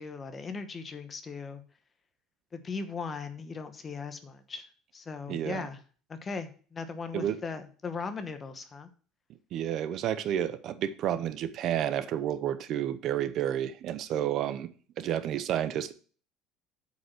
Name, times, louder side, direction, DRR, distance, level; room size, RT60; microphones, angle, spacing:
voice 1, 0.0-1.6 2.5-4.7 4.9-5.8 6.1-8.9, left 4 dB, 20° left, 1.0 m, -38 dB
voice 2, 5.3-5.7 7.1-7.4 9.5-14.7 15.0-15.9, right 10 dB, 45° right, 0.6 m, -30 dB
8.2 x 5.3 x 6.0 m
cardioid pair, 160°, 0 cm